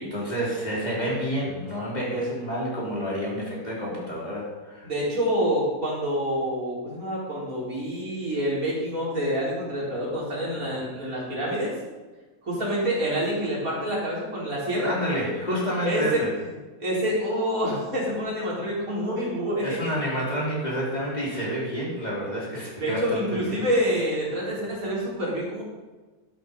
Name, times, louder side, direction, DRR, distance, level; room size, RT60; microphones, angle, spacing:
voice 1, 0.1-4.9 14.8-16.3 19.6-23.6, equal, 25° left, -5 dB, 3.9 m, -29 dB
voice 2, 4.8-11.7 12.4-14.9 15.8-16.2 16.8-19.8 22.8-25.6, equal, 60° right, -5 dB, 4.5 m, -27 dB
12.0 x 9.0 x 5.4 m, 1.3 s
omnidirectional pair, 1.7 m